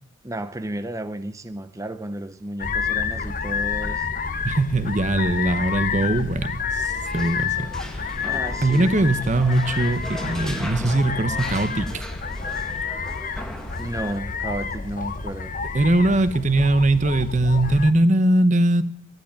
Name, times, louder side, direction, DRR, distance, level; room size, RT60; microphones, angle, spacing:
voice 1, 0.2-4.1 8.2-9.1 13.8-15.5, right 1 dB, 15° right, 0.7 m, -33 dB
sound 1, 2.6-17.9, left 5 dB, 40° left, 0.9 m, -29 dB
voice 2, 4.4-7.7 8.0-8.2 8.6-12.0 15.7-18.8, right 1 dB, 35° right, 1.0 m, -21 dB
sound 2, 6.8-14.2, equal, 5° left, 1.5 m, -39 dB
13.0 x 12.0 x 8.8 m
head